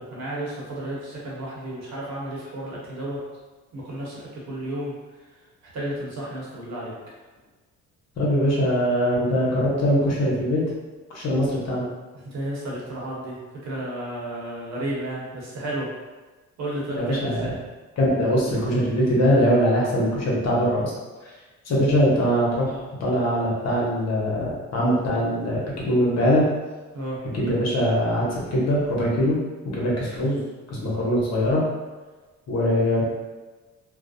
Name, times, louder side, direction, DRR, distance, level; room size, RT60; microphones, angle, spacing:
voice 1, 0.0-3.2 3.7-5.3 5.6-6.9 12.1-15.9 16.6-17.5 26.9-27.2, right 1 dB, 60° right, -5 dB, 0.9 m, -32 dB
voice 2, 8.2-10.6 11.1-11.8 17.0-17.4 18.0-20.9 21.6-26.5 27.3-29.4 29.6-30.4 30.7-31.6 32.5-33.0, equal, 60° left, -5 dB, 0.9 m, -22 dB
2.3 x 2.0 x 2.6 m, 1.3 s
cardioid pair, 90°, 30 cm